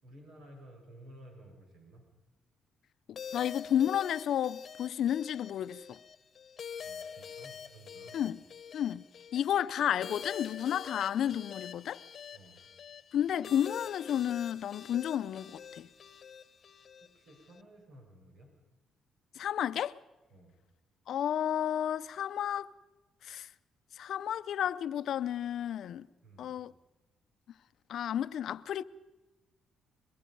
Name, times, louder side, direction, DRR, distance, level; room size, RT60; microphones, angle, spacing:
voice 1, 0.0-2.0 6.8-8.2 12.3-12.6 17.0-18.6 20.3-20.5 26.2-26.5, right 1 dB, 75° right, 6.5 m, -54 dB
voice 2, 3.1-6.0 8.1-8.4 8.7-9.0 9.3-12.0 13.1-15.9 19.4-20.0 21.1-22.7 23.2-23.5 23.9-26.1 26.4-26.7 27.9-28.8, left 10 dB, 70° left, 0.6 m, -32 dB
sound 1, 3.2-17.6, left 7 dB, 55° left, 1.0 m, -46 dB
22.5 x 22.0 x 5.4 m
cardioid pair, 90°, 0 cm